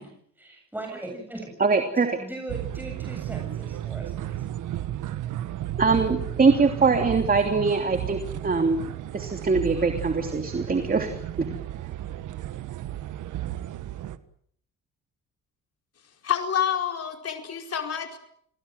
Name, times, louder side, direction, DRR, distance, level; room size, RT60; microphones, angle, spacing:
voice 1, 0.0-1.5 1.9-4.4, right 2 dB, 5° right, 2 dB, 7.8 m, -39 dB
voice 2, 1.6-2.2 5.8-8.8 9.1-11.1 11.4-11.5, right 4 dB, 30° right, 6 dB, 3.1 m, -22 dB
sound 1, 2.5-14.2, right 13 dB, 80° right, 1.6 m, -33 dB
voice 3, 16.2-18.2, left 8 dB, 55° left, 4 dB, 4.7 m, -28 dB
28.0 x 19.5 x 7.9 m, 0.65 s
cardioid pair, 90°, 30 cm